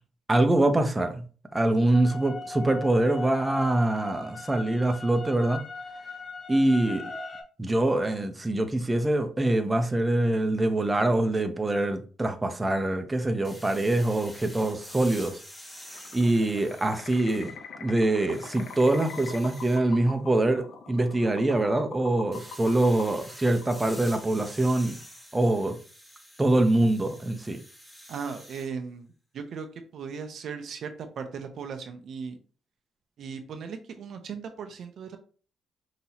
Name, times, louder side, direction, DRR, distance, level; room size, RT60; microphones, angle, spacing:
voice 1, 0.3-1.2 1.5-5.6 6.5-7.0 7.6-15.4 16.1-17.5 17.8-25.0 25.3-25.8 26.4-27.6, right 1 dB, 15° right, 6 dB, 0.7 m, -24 dB
sound 1, 1.9-7.4, left 3 dB, 30° left, 1.4 m, -39 dB
sound 2, 13.4-17.7 18.1-19.8 22.3-28.7, equal, 5° left, 1.3 m, -48 dB
sound 3, 15.9-24.4, left 5 dB, 70° left, 0.8 m, -44 dB
voice 2, 28.1-29.7 29.9-32.4 33.2-35.2, right 6 dB, 65° right, 7 dB, 0.6 m, -37 dB
5.5 x 2.9 x 2.8 m, 0.39 s
cardioid pair, 90°, 0 cm